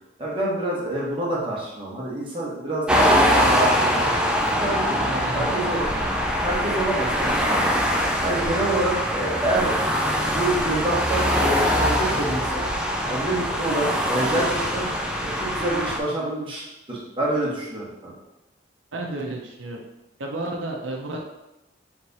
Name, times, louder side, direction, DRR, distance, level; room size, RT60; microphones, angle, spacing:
voice 1, 0.2-4.1 4.6-5.0 5.3-6.0 6.4-7.7 8.2-9.7 10.3-12.6 13.1-14.9 15.2-18.1, right 1 dB, 30° right, -6 dB, 1.1 m, -27 dB
sound 1, 2.9-16.0, equal, 5° right, 0.3 m, -23 dB
voice 2, 5.0-5.7 18.9-19.8 20.2-21.2, right 2 dB, 85° right, 0 dB, 0.6 m, -32 dB
3.4 x 3.2 x 4.0 m, 0.96 s
head